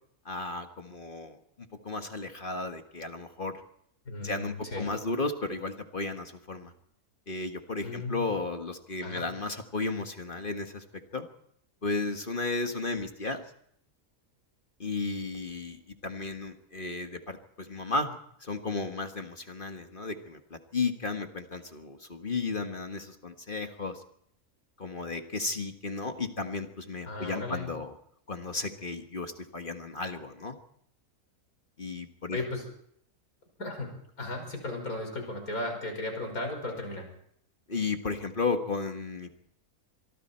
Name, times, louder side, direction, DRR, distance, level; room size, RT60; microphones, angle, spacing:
voice 1, 0.2-3.6 4.2-6.7 7.3-10.8 11.1-11.3 11.8-13.4 14.8-24.0 24.8-27.9 28.3-30.6 31.8-32.4 37.7-39.4, left 3 dB, 35° left, 6 dB, 1.6 m, -34 dB
voice 2, 4.1-4.9 7.8-8.3 9.0-9.3 27.1-27.7 32.3-32.7 33.6-37.1, left 2 dB, 75° left, 3 dB, 5.9 m, -35 dB
25.5 x 23.5 x 4.4 m, 0.69 s
omnidirectional pair, 1.5 m